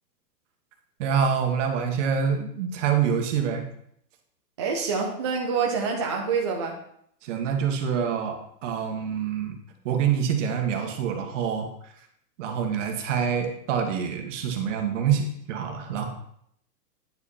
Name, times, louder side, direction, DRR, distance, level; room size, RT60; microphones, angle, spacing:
voice 1, 1.0-3.6 7.2-9.6 9.8-11.7 12.4-16.1, right 7 dB, 45° right, 4 dB, 1.6 m, -26 dB
voice 2, 4.6-6.8, right 5 dB, 20° right, -1 dB, 0.4 m, -26 dB
9.5 x 5.1 x 4.2 m, 0.69 s
hypercardioid pair, 140°, 49 cm